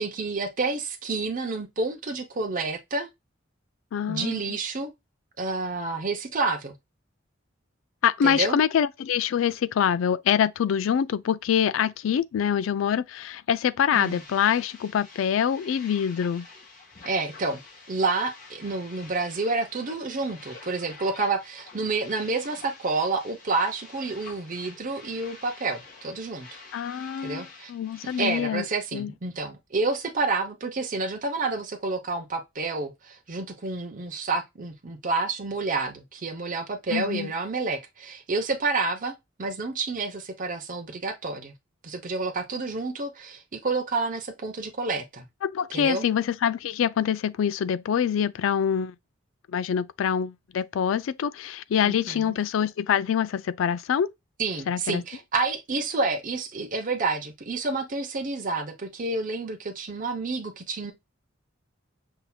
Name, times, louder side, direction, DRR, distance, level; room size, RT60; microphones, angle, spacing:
voice 1, 0.0-3.1 4.1-4.9 5.4-6.7 8.2-8.6 13.9-14.2 17.0-17.6 17.9-26.5 27.2-27.7 28.2-41.5 41.8-45.2 45.7-46.1 51.8-52.3 54.4-60.9, right 3 dB, 45° right, 0.8 m, -29 dB
voice 2, 3.9-4.4 8.0-16.5 26.7-28.6 28.9-29.1 36.9-37.3 45.4-48.9 49.5-54.1 54.7-55.0, left 8 dB, 80° left, 0.3 m, -25 dB
sound 1, 13.9-28.4, left 3 dB, 45° left, 1.7 m, -48 dB
5.7 x 2.7 x 2.3 m
head